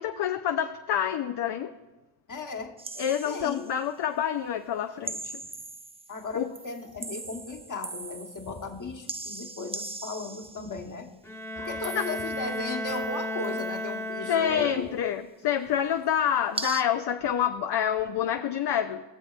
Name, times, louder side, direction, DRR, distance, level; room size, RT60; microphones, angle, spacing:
voice 1, 0.0-1.7 3.0-5.3 6.3-6.5 11.6-12.0 14.3-19.0, left 9 dB, 55° left, 7 dB, 0.5 m, -27 dB
voice 2, 2.3-2.8 3.2-3.7 6.1-11.1 11.6-14.9, left 3 dB, 40° left, 3 dB, 1.2 m, -36 dB
sound 1, 2.8-3.8 5.0-6.3 6.5-8.7 9.1-10.8 11.8-12.6 12.9-13.7 16.5-16.8, right 3 dB, 15° right, 0.4 m, -39 dB
Bowed string instrument, 11.2-15.2, equal, 5° left, 1.0 m, -34 dB
18.5 x 6.8 x 2.4 m, 1.1 s
cardioid pair, 55°, 49 cm